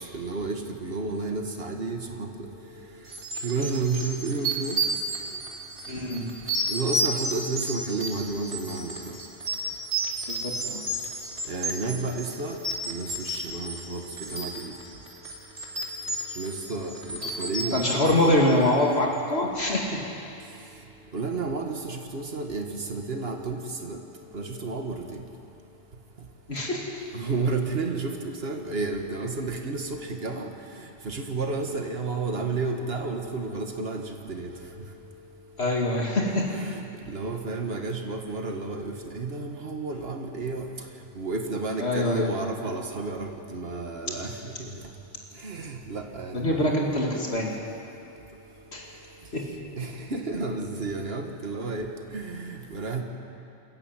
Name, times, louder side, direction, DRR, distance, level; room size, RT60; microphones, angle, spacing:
voice 1, 0.1-2.5 3.4-4.8 6.7-8.9 11.5-12.6 12.9-14.0 14.3-14.7 16.4-18.4 21.1-24.0 24.3-25.0 27.1-28.1 28.4-30.5 31.1-34.0 34.3-34.5 36.5-36.8 37.1-40.6 41.2-44.3 45.4-46.7 49.8-51.9 52.1-53.0, right 3 dB, 70° right, 3 dB, 1.9 m, -31 dB
sound 1, 3.1-18.9, right 1 dB, 85° right, 3.0 m, -32 dB
voice 2, 5.9-6.3 10.3-10.8 17.7-20.0 26.5-26.9 35.6-36.5 41.8-42.3 46.3-47.6 48.7-48.9 49.3-49.5, left 1 dB, 80° left, -2 dB, 2.7 m, -24 dB
29.0 x 14.0 x 9.0 m, 2.8 s
omnidirectional pair, 1.1 m